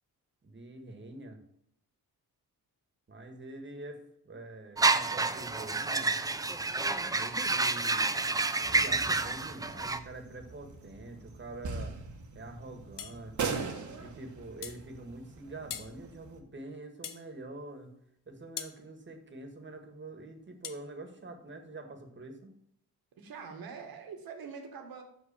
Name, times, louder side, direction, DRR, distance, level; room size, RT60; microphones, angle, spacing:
voice 1, 0.4-1.4 3.1-6.2 7.1-12.0 12.3-13.6 14.0-17.9 18.3-22.5, right 2 dB, 30° right, 5 dB, 1.6 m, -46 dB
sound 1, 4.8-10.0, right 3 dB, 10° right, 0.4 m, -29 dB
sound 2, 9.2-16.4, right 4 dB, 50° right, 1.3 m, -41 dB
sound 3, 13.0-13.2 14.6-14.8 15.7-15.9 17.0-17.3 18.6-18.8 20.6-20.8, left 9 dB, 60° left, 0.8 m, -41 dB
voice 2, 23.2-25.0, right 6 dB, 70° right, 4 dB, 1.8 m, -44 dB
6.1 x 5.2 x 6.8 m, 0.74 s
cardioid pair, 105°, 38 cm